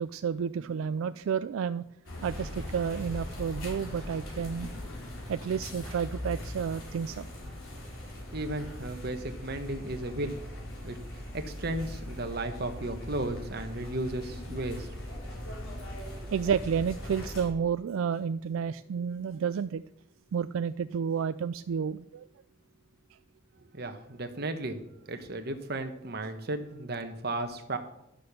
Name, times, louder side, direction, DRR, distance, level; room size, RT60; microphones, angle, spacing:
voice 1, 0.0-1.8 2.2-4.7 5.3-7.3 16.3-19.8 20.3-22.3, right 7 dB, 80° right, 13 dB, 0.3 m, -31 dB
sound 1, 2.0-17.5, left 1 dB, 80° left, 4.0 m, -40 dB
voice 2, 8.3-10.4 10.8-11.0 11.3-14.9 16.2-16.3 23.7-24.8 25.1-27.8, right 2 dB, 50° right, 7 dB, 1.2 m, -34 dB
11.5 x 6.8 x 6.7 m, 0.82 s
head